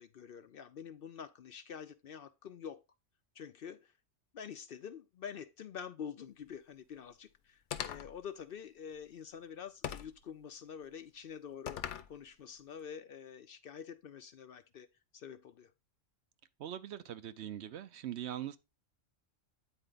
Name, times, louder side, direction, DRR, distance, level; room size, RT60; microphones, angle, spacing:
voice 1, 0.0-2.8 3.3-3.9 4.3-14.9 15.1-15.7, left 7 dB, 60° left, 0.7 m, -47 dB
sound 1, 7.7-8.2 9.8-10.2 11.7-12.1, left 9 dB, 75° left, 1.0 m, -40 dB
voice 2, 16.6-18.6, right 11 dB, 70° right, 0.8 m, -42 dB
9.0 x 4.4 x 3.8 m
omnidirectional pair, 1.2 m